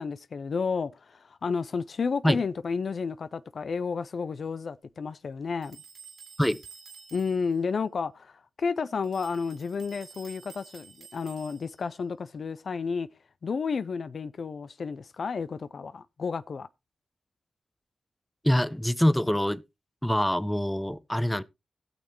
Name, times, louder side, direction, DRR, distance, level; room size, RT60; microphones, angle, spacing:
voice 1, 0.0-5.8 7.1-13.1 13.4-16.7, left 5 dB, 70° left, 0.4 m, -31 dB
sound 1, 5.6-7.6 9.0-11.9, right 5 dB, 80° right, 2.1 m, -50 dB
voice 2, 18.4-19.6 20.0-21.4, equal, 5° left, 0.8 m, -24 dB
17.0 x 6.6 x 2.9 m
cardioid pair, 45°, 0 cm